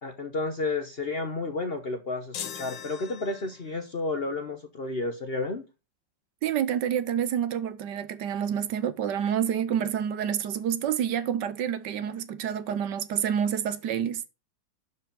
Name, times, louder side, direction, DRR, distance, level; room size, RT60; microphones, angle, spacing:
voice 1, 0.0-5.6, left 3 dB, 40° left, 0.9 m, -31 dB
sound 1, 2.3-3.8, left 8 dB, 80° left, 1.8 m, -40 dB
voice 2, 6.4-14.2, right 9 dB, 70° right, 1.4 m, -28 dB
11.0 x 5.0 x 5.3 m
omnidirectional pair, 2.0 m